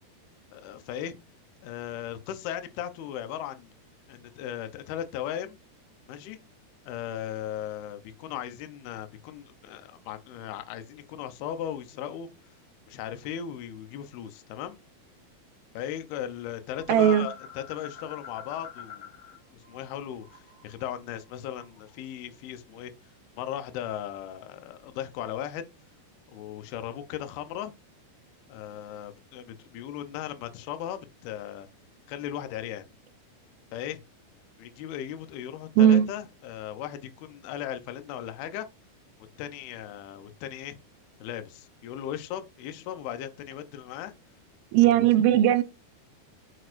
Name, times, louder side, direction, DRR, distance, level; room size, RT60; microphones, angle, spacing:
voice 1, 0.5-1.2 1.6-3.7 4.1-5.6 6.1-6.4 6.9-12.3 12.9-14.8 15.7-19.1 19.5-22.9 23.4-25.7 26.3-27.7 28.5-31.7 32.1-32.9 33.7-34.0 34.6-38.7 39.4-40.8 41.2-44.1 44.8-45.0, left 10 dB, 75° left, 2.6 m, -37 dB
sound 1, 16.8-19.4 19.6-21.9, left 7 dB, 45° left, 3.1 m, -47 dB
voice 2, 16.9-17.3 35.8-36.1 44.7-45.6, right 11 dB, 85° right, 2.2 m, -18 dB
8.8 x 6.4 x 2.6 m
omnidirectional pair, 4.9 m